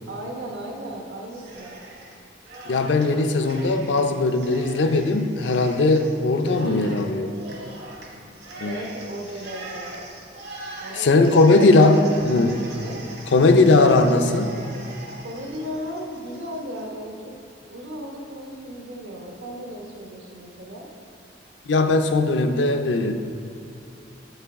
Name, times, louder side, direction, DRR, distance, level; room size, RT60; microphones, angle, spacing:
voice 1, 0.1-1.8 6.7-7.6 8.6-9.9 10.8-12.3 12.8-13.0 15.2-17.2 17.7-20.9, equal, 80° right, 0 dB, 1.0 m, -36 dB
Cheering, 1.3-2.1 2.4-16.8, right 2 dB, 65° right, 1.3 m, -41 dB
voice 2, 2.7-7.3 8.6-8.8 10.9-12.6 13.3-14.6 21.7-23.1, left 2 dB, 75° left, 7 dB, 0.5 m, -19 dB
7.6 x 5.4 x 3.5 m, 2.5 s
head